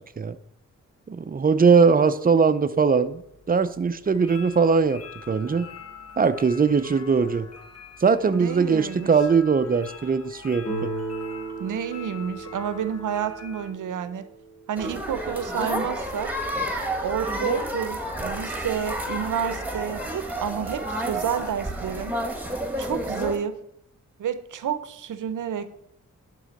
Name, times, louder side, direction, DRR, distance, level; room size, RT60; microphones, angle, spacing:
voice 1, 1.1-3.2 3.5-5.0 5.3-5.7 6.2-7.5 8.0-10.9, right 5 dB, 30° right, 11 dB, 0.6 m, -20 dB
sound 1, 3.0-13.7, left 6 dB, 55° left, 1.3 m, -45 dB
voice 2, 8.3-9.1 11.6-14.3 14.7-16.3 17.0-22.2 22.8-23.6 24.2-25.8, right 8 dB, 80° right, 12 dB, 0.8 m, -30 dB
Guitar, 10.6-15.4, right 3 dB, 25° left, 2.8 m, -36 dB
sound 2, 14.8-23.4, right 1 dB, 5° right, 1.6 m, -30 dB
11.0 x 3.8 x 6.5 m, 0.77 s
cardioid pair, 85°, 31 cm